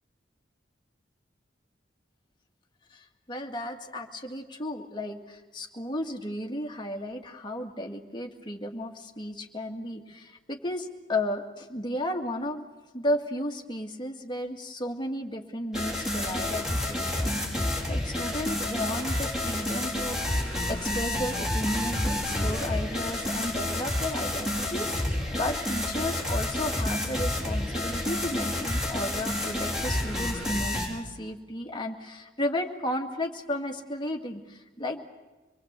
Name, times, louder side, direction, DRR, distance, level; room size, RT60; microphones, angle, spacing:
voice 1, 2.9-12.7 12.9-20.4 20.7-35.1, left 1 dB, 25° left, 2 dB, 2.1 m, -34 dB
sound 1, 15.7-30.9, left 1 dB, 5° right, 4.8 m, -29 dB
25.5 x 22.0 x 8.2 m, 1.2 s
head